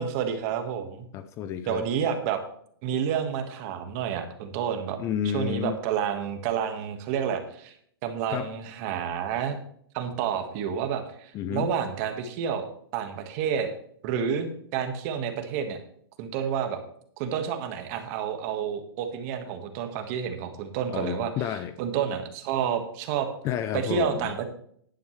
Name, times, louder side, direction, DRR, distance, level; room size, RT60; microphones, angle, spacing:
voice 1, 0.0-1.1 1.7-2.4 2.8-5.0 5.3-7.7 8.0-9.6 9.9-12.6 12.9-13.7 14.0-15.8 16.2-16.8 17.2-21.3 21.8-23.3 23.7-24.5, right 8 dB, 35° right, 7 dB, 1.7 m, -29 dB
voice 2, 1.1-1.9 5.0-5.8 8.3-8.5 11.3-11.7 20.9-21.7 23.4-24.3, left 9 dB, 20° left, 11 dB, 0.5 m, -30 dB
11.0 x 10.5 x 3.3 m, 0.65 s
hypercardioid pair, 145°, 13 cm